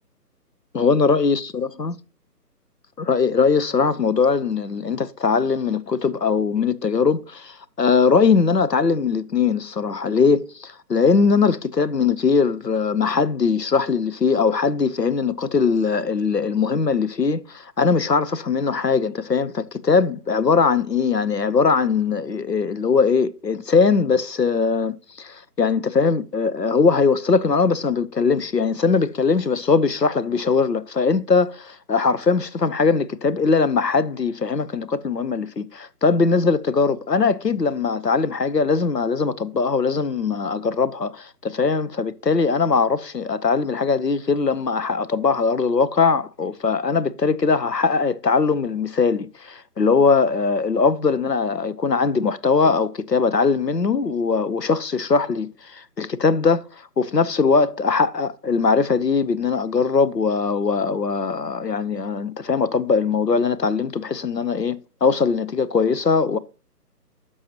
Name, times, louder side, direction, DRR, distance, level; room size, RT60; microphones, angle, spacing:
voice 1, 0.7-1.9 3.0-56.6 57.0-66.4, left 5 dB, 85° left, 1.0 m, -21 dB
11.0 x 6.6 x 2.9 m
figure-of-eight pair, 150°, 48 cm